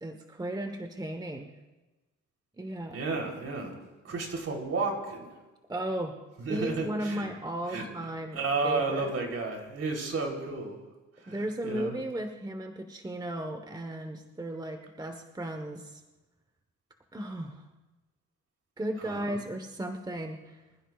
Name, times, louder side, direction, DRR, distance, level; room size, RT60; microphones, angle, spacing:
voice 1, 0.0-1.5 2.5-3.0 5.7-6.1 6.5-9.1 11.3-16.0 17.1-17.6 18.8-20.6, right 1 dB, 15° right, 5 dB, 1.2 m, -35 dB
voice 2, 2.9-3.8 4.0-5.4 6.4-7.3 7.7-7.8 8.3-10.8 11.2-12.0 19.0-19.4, right 3 dB, 50° right, 1 dB, 3.7 m, -32 dB
25.0 x 14.5 x 2.4 m, 1.2 s
cardioid pair, 90°, 30 cm